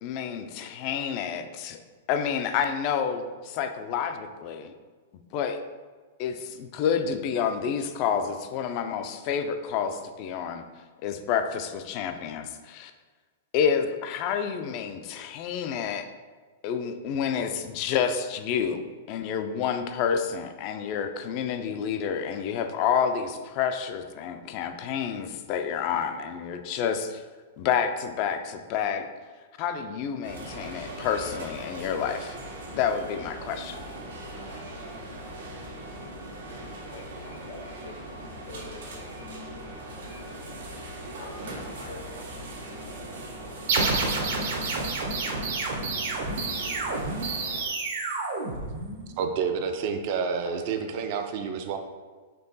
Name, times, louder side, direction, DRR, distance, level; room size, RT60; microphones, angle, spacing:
voice 1, 0.0-1.8 2.1-4.7 5.3-5.6 6.2-10.6 11.0-12.9 13.5-16.1 16.6-18.8 19.1-27.2 27.6-29.1 29.6-32.4 32.7-33.8, left 7 dB, 40° left, 8 dB, 0.3 m, -29 dB
sound 1, 30.2-47.6, right 1 dB, 85° right, 1.3 m, -40 dB
voice 2, 36.9-37.6 37.9-38.0 38.5-39.1 41.2-41.3 41.7-42.0 50.4-50.6, left 3 dB, 85° left, 1 dB, 1.0 m, -44 dB
sound 2, 43.7-49.1, right 3 dB, 65° right, 0.9 m, -29 dB
voice 3, 49.2-51.8, right 6 dB, 45° right, 6 dB, 0.4 m, -29 dB
4.5 x 2.9 x 4.0 m, 1.4 s
hypercardioid pair, 155°, 0 cm